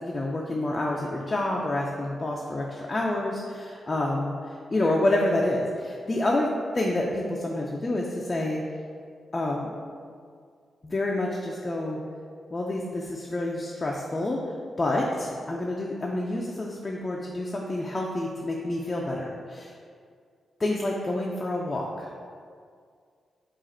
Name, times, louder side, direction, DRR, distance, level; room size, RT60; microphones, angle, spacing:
voice 1, 0.0-4.3 4.7-6.5 6.7-8.6 9.3-9.7 10.8-12.0 12.5-14.4 14.8-19.7 20.6-22.1, left 1 dB, 30° left, -2 dB, 0.4 m, -28 dB
4.8 x 2.4 x 4.2 m, 2.1 s
cardioid pair, 90°, 0 cm